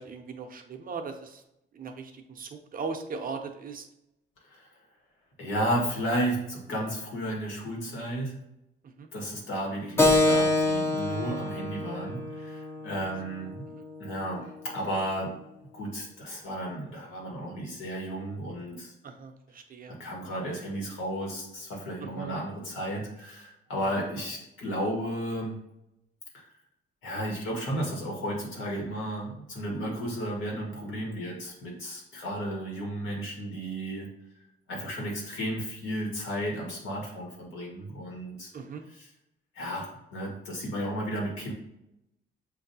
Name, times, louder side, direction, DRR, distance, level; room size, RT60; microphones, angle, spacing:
voice 1, 0.0-1.4 1.7-3.8 8.8-9.1 13.7-13.9 19.0-19.9 22.0-22.3 23.8-24.1 38.5-38.8, right 5 dB, 45° right, 4 dB, 0.7 m, -39 dB
voice 2, 5.4-8.3 9.1-13.6 14.0-15.4 15.7-18.9 19.9-25.6 26.3-26.4 27.0-34.1 34.7-38.5 39.0-39.1 39.5-41.5, equal, 80° left, -2 dB, 1.7 m, -33 dB
Keyboard (musical), 10.0-15.1, left 2 dB, 15° left, 0.8 m, -27 dB
7.0 x 2.6 x 2.7 m, 0.86 s
cardioid pair, 90°, 20 cm